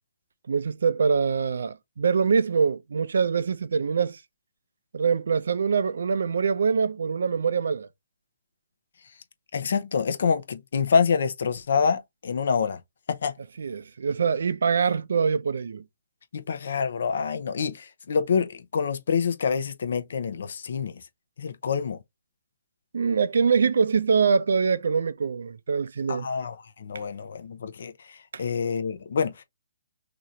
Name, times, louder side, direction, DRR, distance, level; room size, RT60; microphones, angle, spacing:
voice 1, 0.5-4.2 4.9-7.9 13.6-15.8 22.9-26.3 28.3-28.4, right 5 dB, 75° right, 0.5 m, -24 dB
voice 2, 9.5-12.8 13.1-13.3 16.3-21.0 21.4-22.0 26.1-29.4, left 6 dB, 65° left, 0.7 m, -27 dB
2.9 x 2.5 x 4.1 m
hypercardioid pair, 160°, 0 cm